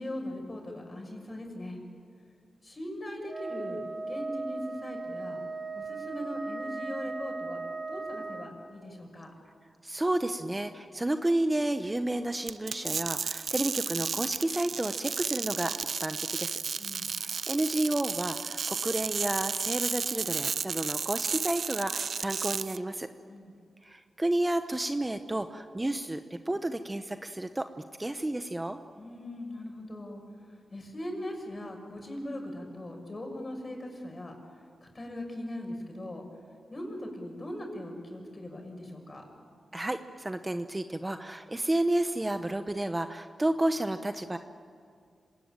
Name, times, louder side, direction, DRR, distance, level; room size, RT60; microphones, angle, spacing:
voice 1, 0.0-1.8 2.6-5.4 5.7-7.6 7.9-9.3 16.8-17.1 23.3-23.5 29.0-34.3 34.8-36.2 36.7-39.2, left 1 dB, 35° left, 2 dB, 6.6 m, -40 dB
Wind instrument woodwind instrument, 3.3-8.6, right 3 dB, 50° right, 2.9 m, -37 dB
voice 2, 9.8-15.7 16.0-16.6 17.2-23.1 23.8-26.2 26.5-27.7 28.0-28.8 39.7-44.4, right 1 dB, 20° right, 8 dB, 1.0 m, -31 dB
sound 1, 12.5-22.8, right 6 dB, 70° right, 0.6 m, -33 dB
26.5 x 18.5 x 9.0 m, 2.3 s
cardioid pair, 60°, 0 cm